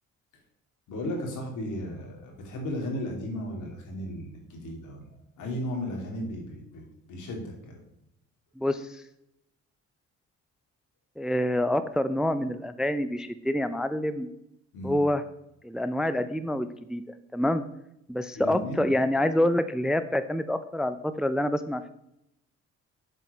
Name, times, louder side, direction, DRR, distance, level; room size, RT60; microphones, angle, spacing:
voice 1, 0.9-7.8 14.7-15.0 18.3-18.9, left 1 dB, 80° left, 0 dB, 2.7 m, -35 dB
voice 2, 8.6-9.0 11.2-14.3 14.8-15.2 15.6-17.0 17.3-17.6 18.1-21.9, left 1 dB, ahead, 11 dB, 0.4 m, -27 dB
7.7 x 4.6 x 5.5 m, 0.80 s
cardioid pair, 90°, 30 cm